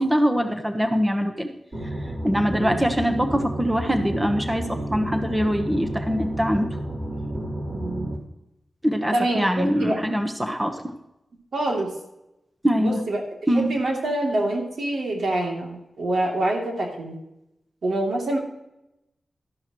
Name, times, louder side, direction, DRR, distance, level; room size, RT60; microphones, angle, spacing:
voice 1, 0.0-1.5 2.2-6.7 8.8-10.9 12.6-13.0 13.5-13.7, equal, 10° right, 5 dB, 1.1 m, -23 dB
sound 1, 1.7-8.2, right 1 dB, 30° right, 3.9 m, -31 dB
voice 2, 2.5-2.9 7.7-8.1 9.1-10.0 11.5-11.9 12.8-13.2 13.5-17.2 17.8-18.4, right 1 dB, 80° right, 0 dB, 2.9 m, -26 dB
12.5 x 11.5 x 3.1 m, 0.88 s
wide cardioid pair, 75°, 0 cm